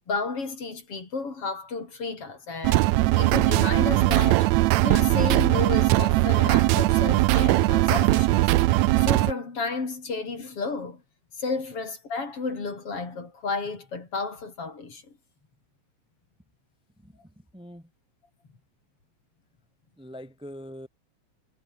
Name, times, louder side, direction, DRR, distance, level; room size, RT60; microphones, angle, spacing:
voice 1, 0.1-2.9 3.1-4.5 4.8-8.5 9.0-11.0 11.4-15.0, left 4 dB, 50° left, 5.3 m, -32 dB
sound 1, 2.6-9.3, right 18 dB, 75° right, 1.9 m, -20 dB
voice 2, 17.0-17.9 20.0-20.9, equal, ahead, 2.0 m, -43 dB
omnidirectional pair, 3.3 m